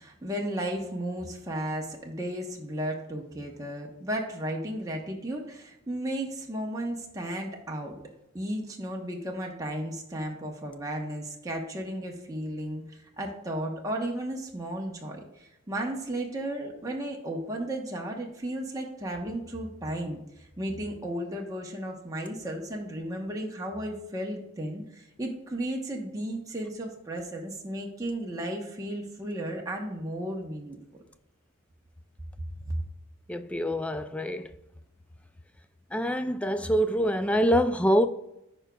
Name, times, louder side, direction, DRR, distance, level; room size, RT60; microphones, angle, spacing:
voice 1, 0.0-8.0 8.3-30.8 32.6-32.8, right 1 dB, 15° right, 0.9 m, -34 dB
voice 2, 33.3-34.5 35.9-38.1, equal, 5° left, 0.3 m, -25 dB
14.0 x 5.0 x 2.3 m
head